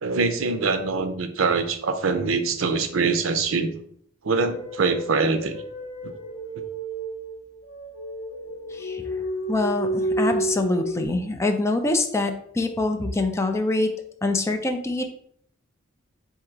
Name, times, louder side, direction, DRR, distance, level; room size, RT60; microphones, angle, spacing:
voice 1, 0.0-3.8 4.2-5.6 6.0-6.1, right 4 dB, 70° right, 7 dB, 0.5 m, -24 dB
sound 1, 4.4-11.1, right 1 dB, 75° left, 0.8 m, -31 dB
voice 2, 8.7-9.0 9.5-13.9 14.2-15.1, left 2 dB, 15° left, 5 dB, 0.4 m, -25 dB
3.7 x 2.7 x 4.5 m, 0.64 s
head